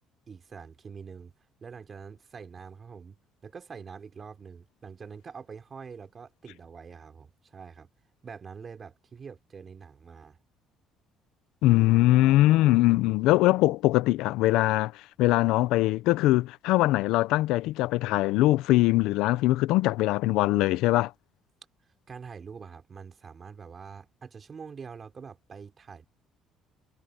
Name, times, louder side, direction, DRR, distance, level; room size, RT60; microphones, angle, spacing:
voice 1, 0.3-1.3 1.6-7.9 8.2-10.4 22.1-26.1, right 6 dB, 35° right, 4.4 m, -45 dB
voice 2, 11.6-14.9 15.2-21.1, left 17 dB, 85° left, 0.7 m, -22 dB
cardioid pair, 110°, 0 cm